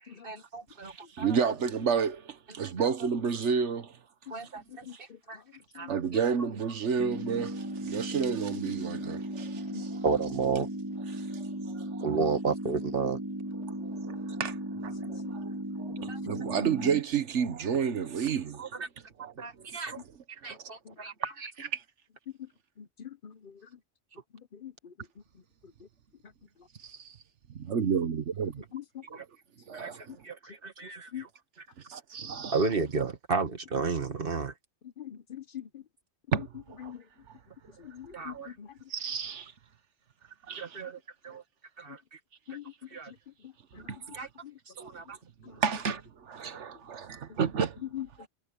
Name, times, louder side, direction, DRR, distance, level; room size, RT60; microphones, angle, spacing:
voice 1, 0.2-1.4 2.8-2.9 4.3-5.4 5.7-6.2 10.0-10.7 12.0-13.2 16.1-16.2 18.6-18.9 19.4-20.0 20.3-21.5 29.2-29.3 29.7-31.3 31.6-31.7 32.5-34.5 38.1-38.5 40.6-41.0 41.2-41.4 41.8-42.2 42.9-43.1 44.1-44.3 44.8-45.2, right 4 dB, 50° right, 1.9 m, -33 dB
voice 2, 0.8-4.0 4.4-4.6 4.9-5.0 5.9-10.0 11.1-12.2 13.6-18.9 19.2-19.7 20.4-20.7 21.6-21.8 26.8-27.2 27.5-28.6 29.1-29.2 29.7-30.2 31.9-32.6 36.3-36.9 38.9-39.5 40.5-40.8 43.7-44.2 44.8-44.9 45.4-47.8 48.2-48.3, right 6 dB, 80° right, 1.4 m, -32 dB
voice 3, 4.7-5.2 5.8-5.9 9.7-9.8 22.8-23.5 24.5-24.9 28.7-29.0 31.1-31.2 35.0-35.8 36.8-37.0 37.8-38.7 42.5-42.6 43.1-43.2 43.4-43.8 44.4-44.5 47.9-48.0, left 10 dB, 55° left, 0.8 m, -43 dB
sound 1, 7.0-17.0, right 1 dB, 15° right, 1.6 m, -36 dB
omnidirectional pair, 1.2 m